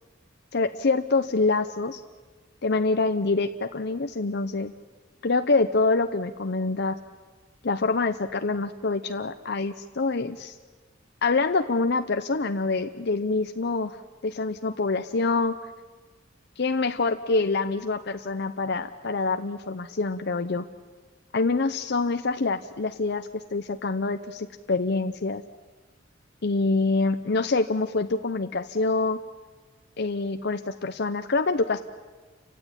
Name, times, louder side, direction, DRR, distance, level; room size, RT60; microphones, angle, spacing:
voice 1, 0.5-2.0 2.6-4.7 5.2-7.0 7.6-10.6 11.2-14.0 14.2-15.6 16.6-20.6 21.3-25.4 26.4-29.2 30.0-31.8, left 3 dB, 60° left, 8 dB, 0.8 m, -26 dB
29.0 x 16.0 x 9.9 m, 1.4 s
head